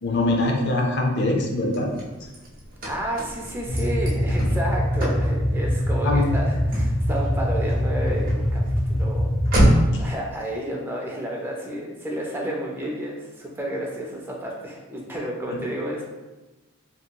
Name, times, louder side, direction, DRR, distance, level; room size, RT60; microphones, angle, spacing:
voice 1, 0.0-1.9 6.0-6.4 9.9-10.0 15.5-15.6, left 2 dB, 55° left, 2 dB, 0.4 m, -23 dB
Car / Slam, 1.4-10.1, right 1 dB, 40° right, 0.7 m, -28 dB
voice 2, 2.8-9.3 10.0-16.0, right 1 dB, 10° right, -2 dB, 0.4 m, -31 dB
sound 1, 3.7-9.6, equal, 80° left, 0.8 m, -23 dB
2.8 x 2.6 x 2.2 m, 1.1 s
head